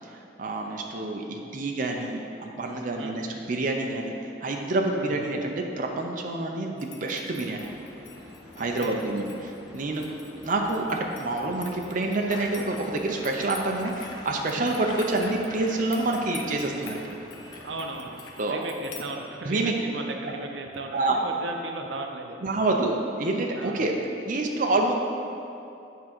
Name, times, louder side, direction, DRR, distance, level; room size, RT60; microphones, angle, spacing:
voice 1, 0.1-4.1 4.4-7.6 8.6-10.0 10.4-17.2 18.4-18.6 19.4-19.7 20.9-21.2 22.4-23.9 24.2-24.9, right 2 dB, 45° right, 1 dB, 0.6 m, -27 dB
voice 2, 3.0-3.3 4.9-5.2 8.6-9.0 17.6-18.2 18.5-22.4 23.5-23.9, right 2 dB, 85° right, 3 dB, 0.6 m, -36 dB
sound 1, 6.8-19.0, left 5 dB, 75° left, 0.7 m, -47 dB
sound 2, 7.4-18.0, equal, ahead, 1.9 m, -48 dB
sound 3, 12.3-18.9, left 2 dB, 25° left, 0.6 m, -46 dB
8.4 x 3.7 x 6.0 m, 2.7 s
head